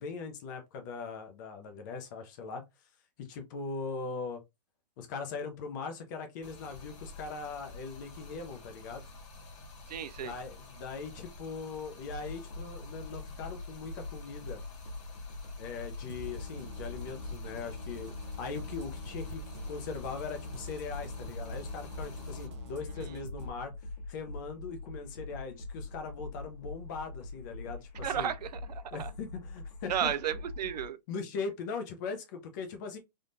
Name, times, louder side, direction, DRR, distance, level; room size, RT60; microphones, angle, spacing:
voice 1, 0.0-2.6 3.2-4.4 5.0-9.0 10.2-14.6 15.6-23.7 24.1-28.3 28.9-30.1 31.1-33.0, left 4 dB, 30° left, 0.6 m, -40 dB
Stream, 6.4-22.5, left 2 dB, 45° left, 1.4 m, -49 dB
voice 2, 9.9-10.3 23.0-23.2 28.0-29.1 29.9-31.0, right 9 dB, 80° right, 0.5 m, -34 dB
sound 1, 12.1-30.9, left 2 dB, 70° left, 1.4 m, -43 dB
sound 2, 16.1-23.5, left 1 dB, 45° right, 0.7 m, -46 dB
3.6 x 2.4 x 2.6 m
hypercardioid pair, 160°, 21 cm